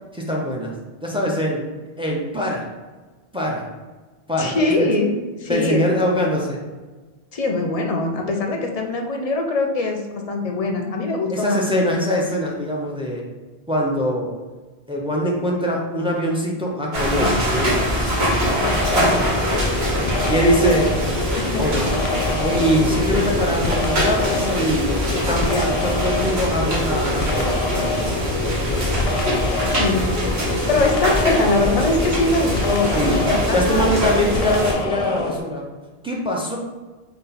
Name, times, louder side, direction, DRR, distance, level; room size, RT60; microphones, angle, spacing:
voice 1, 0.1-0.7 1.0-1.6 2.0-2.6 3.3-3.7 4.3-4.9 5.5-6.6 11.3-13.2 13.7-14.3 14.9-18.1 20.3-21.0 21.6-21.9 22.4-24.9 25.3-27.6 32.9-33.2 33.5-35.6 36.0-36.6, equal, 10° right, -2 dB, 0.3 m, -22 dB
voice 2, 4.4-5.1 5.4-5.9 7.3-11.6 21.4-21.6 29.5-30.1 30.5-32.9 33.2-33.9, left 2 dB, 50° left, 2 dB, 0.5 m, -22 dB
sound 1, 16.9-34.7, equal, 85° right, 1.5 m, -23 dB
sound 2, 18.6-35.4, left 3 dB, 85° left, 0.8 m, -27 dB
4.0 x 2.2 x 4.0 m, 1.3 s
omnidirectional pair, 1.0 m